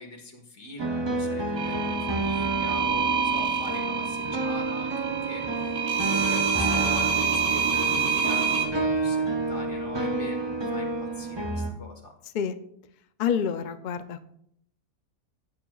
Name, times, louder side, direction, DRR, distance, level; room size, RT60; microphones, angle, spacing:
voice 1, 0.0-5.7 6.0-12.1, left 1 dB, 55° left, 3 dB, 1.9 m, -42 dB
sound 1, 0.8-11.7, right 2 dB, 25° right, 0.6 m, -30 dB
sound 2, 1.6-8.7, right 6 dB, 85° right, 1.6 m, -27 dB
voice 2, 13.2-14.3, left 7 dB, 75° left, 10 dB, 0.4 m, -28 dB
15.0 x 8.6 x 2.3 m, 0.71 s
omnidirectional pair, 1.5 m